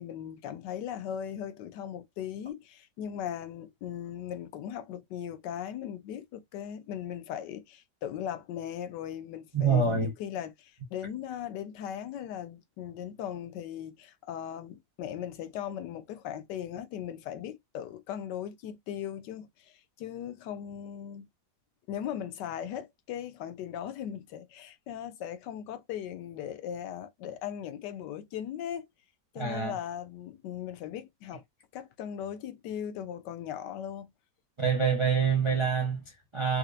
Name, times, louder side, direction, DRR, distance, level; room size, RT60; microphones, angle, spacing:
voice 1, 0.0-21.3 21.9-28.9 29.3-31.4 31.7-34.1, left 9 dB, 85° left, 1.3 m, -38 dB
voice 2, 9.5-10.1 29.4-29.7 34.6-36.6, right 5 dB, 35° right, 0.4 m, -26 dB
4.4 x 2.5 x 2.4 m
omnidirectional pair, 1.8 m